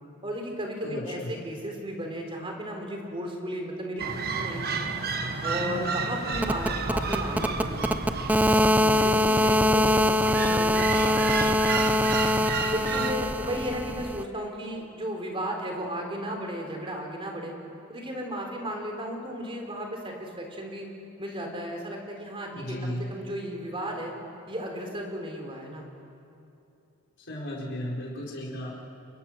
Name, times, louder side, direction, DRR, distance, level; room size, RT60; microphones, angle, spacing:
voice 1, 0.2-4.8 5.4-8.1 8.4-8.6 9.0-12.1 12.6-17.5 17.9-20.9 21.2-24.1 24.5-25.9, equal, 25° right, 2 dB, 3.7 m, -35 dB
voice 2, 0.8-1.3 8.8-9.0 22.5-23.1 27.2-28.7, equal, 55° left, -3 dB, 5.0 m, -35 dB
sound 1, 4.0-13.1, right 4 dB, 45° right, 1.4 m, -31 dB
sound 2, 6.3-14.2, left 1 dB, 5° right, 0.5 m, -24 dB
30.0 x 22.5 x 6.3 m, 2.7 s
head